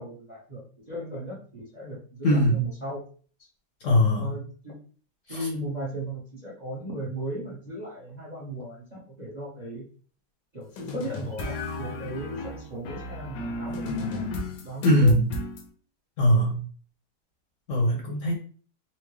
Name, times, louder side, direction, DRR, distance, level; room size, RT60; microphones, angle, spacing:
voice 1, 0.0-3.0 4.1-4.8 5.3-9.8 10.5-15.1, right 1 dB, 35° right, -4 dB, 0.8 m, -37 dB
voice 2, 2.2-2.6 3.8-4.3 5.3-5.4 14.8-15.3 16.2-16.6 17.7-18.3, equal, 55° left, -1 dB, 0.9 m, -21 dB
sound 1, 10.8-15.6, left 2 dB, 75° left, 1.2 m, -34 dB
4.3 x 2.1 x 3.0 m, 0.43 s
omnidirectional pair, 1.9 m